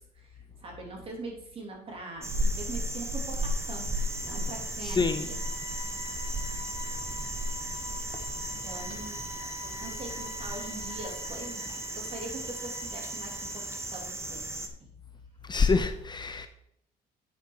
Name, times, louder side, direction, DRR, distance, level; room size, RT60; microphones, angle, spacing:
voice 1, 0.0-3.9 4.2-5.4 8.6-9.2 9.8-14.4, right 2 dB, 35° right, -1 dB, 3.1 m, -42 dB
sound 1, 2.2-14.7, right 1 dB, 15° right, 1.1 m, -34 dB
sound 2, 3.3-14.1, left 3 dB, 80° left, 2.3 m, -46 dB
voice 2, 4.8-5.3 15.5-16.5, left 4 dB, 25° left, 9 dB, 0.5 m, -26 dB
9.3 x 5.3 x 4.8 m, 0.80 s
cardioid pair, 110°, 17 cm